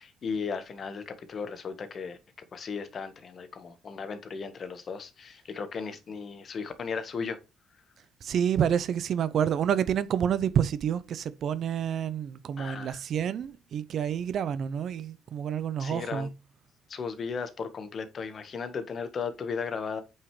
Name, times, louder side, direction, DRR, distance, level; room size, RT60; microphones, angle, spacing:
voice 1, 0.0-2.2 2.5-7.4 12.6-13.0 15.8-16.3 16.9-20.0, left 5 dB, 45° left, 1.6 m, -36 dB
voice 2, 8.2-16.3, right 8 dB, 60° right, 0.8 m, -28 dB
8.7 x 5.6 x 3.3 m
cardioid pair, 100°, 0 cm